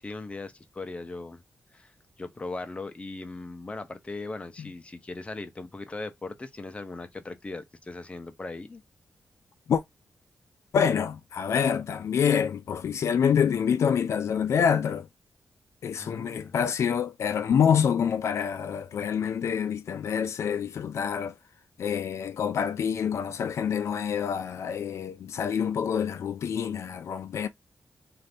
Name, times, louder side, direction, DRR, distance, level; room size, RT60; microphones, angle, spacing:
voice 1, 0.0-1.4 1.7-1.9 2.2-8.8 15.9-16.5, left 3 dB, 25° left, 0.5 m, -39 dB
voice 2, 10.7-15.1 15.8-21.3 21.8-27.5, left 7 dB, 75° left, 0.3 m, -26 dB
2.6 x 2.5 x 3.2 m
cardioid pair, 90°, 5 cm